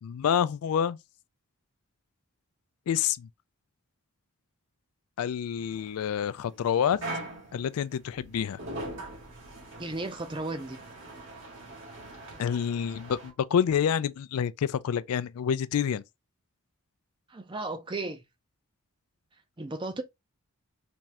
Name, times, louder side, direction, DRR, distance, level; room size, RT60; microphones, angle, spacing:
voice 1, 0.0-1.0 2.9-3.3 5.2-7.0 7.5-8.6 12.4-16.0, left 8 dB, 80° left, 0.3 m, -28 dB
sound 1, 5.6-13.3, right 1 dB, 55° right, 1.7 m, -42 dB
voice 2, 9.8-10.8 17.3-18.2 19.6-20.0, right 2 dB, 20° right, 0.5 m, -34 dB
3.5 x 3.1 x 2.8 m
head